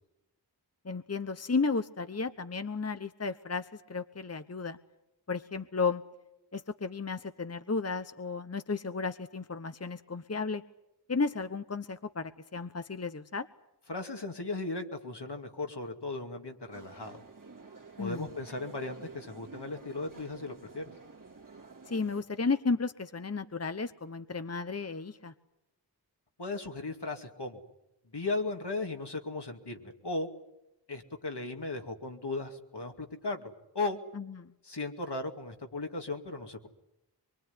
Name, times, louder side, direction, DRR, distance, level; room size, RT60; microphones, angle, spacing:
voice 1, 0.8-4.8 5.3-6.0 6.5-10.6 11.1-13.5 18.0-18.3 21.9-25.3 34.1-34.5, left 4 dB, 35° left, 11 dB, 0.9 m, -33 dB
voice 2, 13.9-17.3 18.0-20.9 26.4-27.6 28.1-30.3 30.9-34.0 34.6-36.7, left 3 dB, 75° left, 4 dB, 2.6 m, -36 dB
sound 1, 16.7-22.2, right 4 dB, 50° right, 2.3 m, -51 dB
24.0 x 22.5 x 9.7 m, 0.89 s
wide cardioid pair, 40°, 41 cm